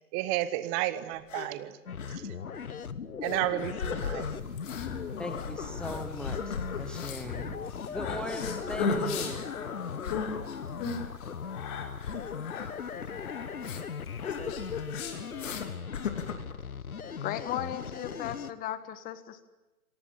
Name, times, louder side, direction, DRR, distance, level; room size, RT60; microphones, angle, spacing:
voice 1, 0.1-1.7 3.2-4.3, right 14 dB, 25° right, 13 dB, 1.5 m, -31 dB
sound 1, 1.1-1.5 2.0-2.2 2.5-2.6 3.2-4.9 5.2-7.3 8.2-10.4 10.8-11.0 12.0-13.1 13.6-13.8 14.2-14.9 15.4-15.7 15.9-16.6, left 7 dB, 55° left, 3.5 m, -38 dB
sound 2, 1.9-18.5, left 6 dB, 75° left, 1.5 m, -39 dB
sound 3, 4.4-15.6, left 4 dB, 35° left, 4.8 m, -38 dB
voice 2, 5.2-7.4 7.9-9.5, equal, ahead, 6 dB, 0.9 m, -38 dB
voice 3, 17.2-19.5, left 11 dB, 20° left, 12 dB, 1.5 m, -36 dB
26.0 x 19.0 x 9.0 m, 1.1 s
figure-of-eight pair, 125°, 44 cm